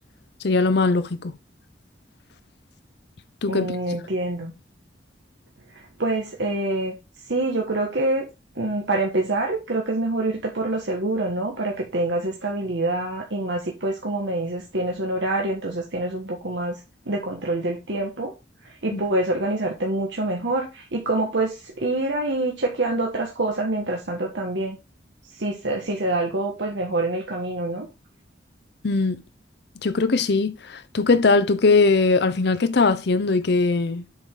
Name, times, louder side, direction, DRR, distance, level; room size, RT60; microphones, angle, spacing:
voice 1, 0.4-1.3 3.4-3.7 18.9-19.0 28.8-29.2 29.8-34.0, left 3 dB, 65° left, 0.7 m, -20 dB
voice 2, 3.5-4.5 5.7-7.0 7.3-8.3 8.5-16.8 17.0-18.4 18.6-24.8 25.3-27.9, right 2 dB, 80° right, 1.4 m, -26 dB
7.4 x 4.9 x 3.8 m
head